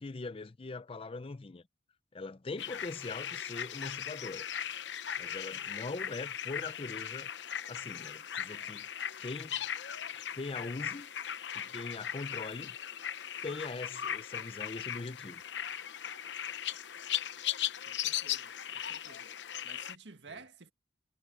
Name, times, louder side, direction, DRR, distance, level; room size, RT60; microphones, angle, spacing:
voice 1, 0.0-1.6 2.1-4.5 5.2-7.3 7.7-8.9 9.2-9.6 10.3-11.1 11.5-12.8 13.4-15.4, left 3 dB, 30° left, 0.5 m, -41 dB
sound 1, 2.6-20.0, left 9 dB, 90° left, 0.8 m, -38 dB
voice 2, 17.9-19.3 19.6-20.7, right 4 dB, 90° right, 1.9 m, -53 dB
head